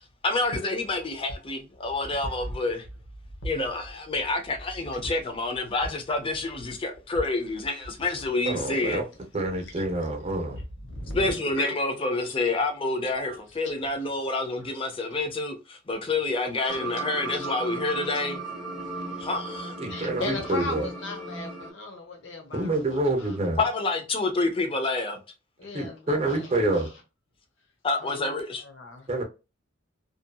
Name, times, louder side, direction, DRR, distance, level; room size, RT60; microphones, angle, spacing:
voice 1, 0.2-2.9 3.4-9.0 11.1-18.4 19.2-19.8 23.6-25.2 27.8-28.6, left 2 dB, 25° left, 0.5 m, -28 dB
voice 2, 8.5-9.0 9.3-10.6 19.8-20.9 22.5-23.6 25.7-26.9 29.1-29.2, right 2 dB, 30° right, 0.7 m, -27 dB
voice 3, 10.8-11.7 13.3-13.6 15.1-15.2 17.3-17.5 18.7-19.4 19.9-23.4 25.6-26.9 28.0-29.1, left 2 dB, 70° left, 1.0 m, -38 dB
sound 1, 16.7-21.7, right 3 dB, 5° right, 0.9 m, -36 dB
2.7 x 2.5 x 2.2 m
head